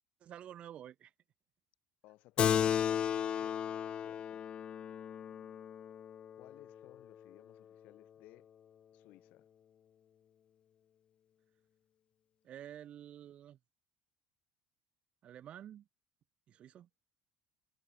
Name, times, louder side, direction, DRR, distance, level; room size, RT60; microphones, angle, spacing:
voice 1, 0.2-1.1 12.4-13.6 15.2-15.9 16.5-16.9, right 10 dB, 50° right, 2.2 m, -50 dB
voice 2, 2.0-4.5 6.4-8.5 8.9-9.5, left 19 dB, 65° left, 3.8 m, -60 dB
Keyboard (musical), 2.4-7.3, left 9 dB, 40° left, 0.4 m, -34 dB
hypercardioid pair, 70°, 3 cm